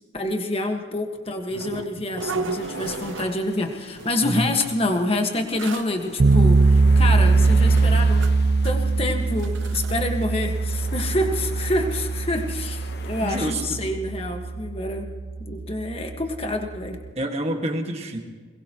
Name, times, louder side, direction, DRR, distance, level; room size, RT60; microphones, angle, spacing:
voice 1, 0.1-8.3 8.6-15.1 15.5-17.0, left 1 dB, 30° left, 4 dB, 1.6 m, -27 dB
sound 1, 1.5-3.7 3.9-4.4 5.2-5.3 5.6-5.9 6.7-6.8 7.4-8.4 8.6-8.9 9.3-10.0 10.2-10.3 10.7-11.1 12.8-12.9 13.3-13.4, right 4 dB, 85° right, 0.8 m, -34 dB
sound 2, 2.5-13.5, left 3 dB, 55° left, 1.1 m, -43 dB
sound 3, 6.2-17.1, right 3 dB, 50° right, 0.5 m, -21 dB
voice 2, 13.2-13.8 17.2-18.2, right 1 dB, 35° right, 3 dB, 1.8 m, -27 dB
22.0 x 21.5 x 3.1 m, 1.5 s
head